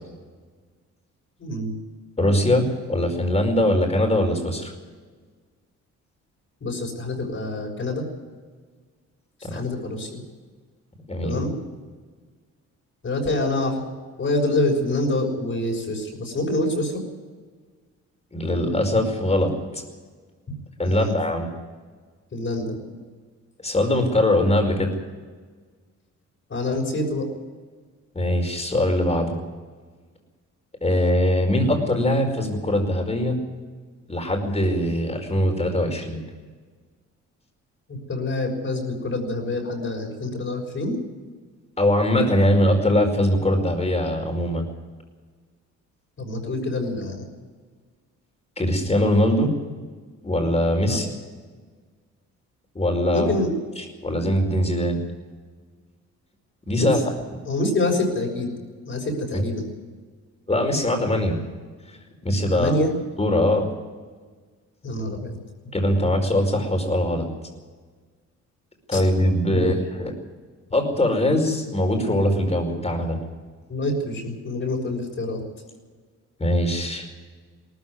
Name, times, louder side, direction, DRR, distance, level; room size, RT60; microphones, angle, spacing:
voice 1, 1.4-1.7 6.6-8.0 9.5-10.2 11.2-11.5 13.0-13.9 14.2-17.0 20.8-21.1 22.3-22.8 26.5-27.3 37.9-41.0 46.2-47.2 50.8-51.0 53.1-53.5 56.7-56.9 57.5-58.5 58.9-59.6 62.5-62.9 64.8-65.4 68.9-69.0 69.5-69.7 73.7-75.4, left 2 dB, 45° left, -1 dB, 6.4 m, -26 dB
voice 2, 2.2-4.7 9.4-9.6 11.1-11.4 18.3-19.8 20.8-21.5 23.6-24.9 28.1-29.4 30.8-33.4 34.1-36.2 41.8-44.6 48.6-49.5 50.2-51.1 52.7-53.3 53.8-55.0 56.7-57.0 59.3-59.4 60.5-61.4 62.2-62.7 63.2-63.7 65.7-67.3 68.9-70.1 70.7-73.2 76.4-77.1, left 1 dB, 20° left, 4 dB, 5.1 m, -22 dB
19.0 x 14.5 x 9.7 m, 1.5 s
cardioid pair, 90°, 30 cm